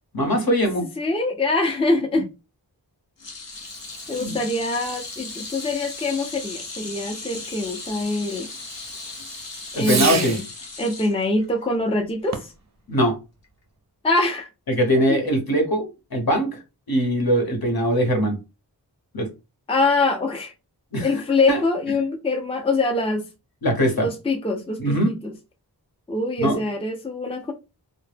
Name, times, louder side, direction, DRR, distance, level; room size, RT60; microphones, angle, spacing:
voice 1, 0.1-0.8 4.2-4.4 9.7-10.4 12.9-13.1 14.7-16.6 16.9-18.4 19.1-19.3 20.9-21.1 21.5-21.6 23.6-24.1 24.8-25.1 26.4-26.6, equal, 55° left, 0.9 m, -21 dB
voice 2, 1.0-2.3 4.1-8.5 9.7-10.4 10.8-12.5 14.0-14.5 19.7-20.5 21.0-23.2 24.0-25.3 26.1-27.5, left 2 dB, 15° left, 0.4 m, -24 dB
sound 1, 3.2-11.7 12.0-12.3 13.4-13.5, left 3 dB, 90° left, 0.8 m, -37 dB
Fireworks, 3.5-10.6 12.2-12.7, right 6 dB, 45° right, 0.4 m, -35 dB
2.0 x 2.0 x 3.3 m
wide cardioid pair, 65°, 42 cm